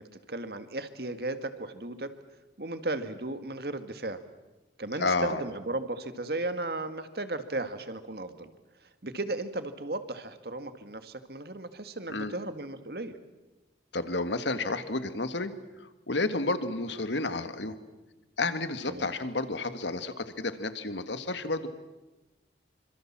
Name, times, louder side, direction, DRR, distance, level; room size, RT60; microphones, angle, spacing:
voice 1, 0.0-2.1 2.6-4.2 4.8-8.5 9.0-13.2 18.9-19.1, right 2 dB, 60° right, 10 dB, 1.9 m, -35 dB
voice 2, 5.0-5.4 12.1-12.3 13.9-15.5 16.1-17.8 18.4-21.7, left 3 dB, 80° left, 11 dB, 1.8 m, -31 dB
27.0 x 25.5 x 7.4 m, 1.1 s
head